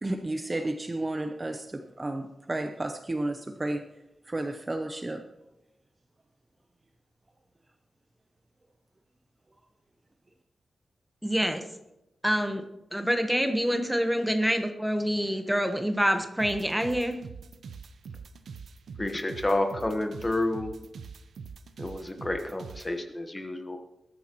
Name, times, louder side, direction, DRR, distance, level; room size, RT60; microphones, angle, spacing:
voice 1, 0.0-3.8 4.3-5.2, right 2 dB, 20° right, 6 dB, 0.7 m, -32 dB
voice 2, 11.2-11.6 12.2-12.6 12.9-17.2, equal, 5° right, 6 dB, 1.1 m, -26 dB
sound 1, 16.4-22.9, right 5 dB, 85° right, 0.7 m, -43 dB
voice 3, 19.0-20.7 21.8-23.8, left 1 dB, 15° left, 5 dB, 1.2 m, -30 dB
20.0 x 12.5 x 3.0 m, 0.93 s
wide cardioid pair, 165°, 0 cm